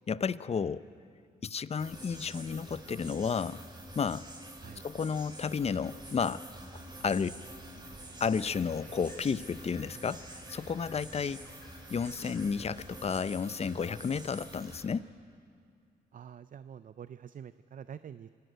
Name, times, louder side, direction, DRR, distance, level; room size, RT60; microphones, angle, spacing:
voice 1, 0.1-0.8 1.4-3.6 4.0-4.3 4.8-6.4 7.0-7.4 8.2-11.4 11.9-15.1, left 6 dB, 35° left, 16 dB, 0.5 m, -32 dB
sound 1, 1.8-14.9, right 1 dB, 25° right, 3.7 m, -48 dB
sound 2, 6.7-12.9, left 1 dB, 15° left, 6.7 m, -54 dB
voice 2, 16.1-18.3, right 8 dB, 50° right, 14 dB, 0.5 m, -46 dB
26.0 x 11.5 x 9.2 m, 2.4 s
cardioid pair, 70°, 17 cm